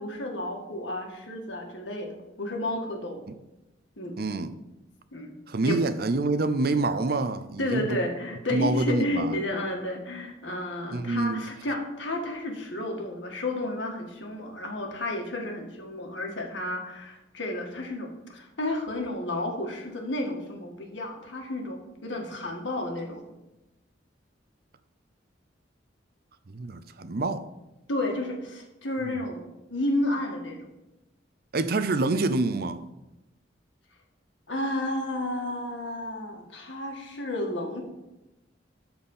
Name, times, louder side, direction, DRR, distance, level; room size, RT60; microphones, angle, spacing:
voice 1, 0.0-3.3 4.0-4.2 5.1-5.3 5.6-5.8 7.6-23.2 27.9-29.4 29.7-30.6 34.5-37.8, left 1 dB, 80° left, 1.9 m, -32 dB
voice 2, 4.2-4.5 5.5-8.0 8.5-9.4 10.9-11.5 26.5-27.5 29.0-29.2 31.5-32.8, right 2 dB, 55° right, 0.6 m, -27 dB
13.0 x 4.4 x 5.5 m
head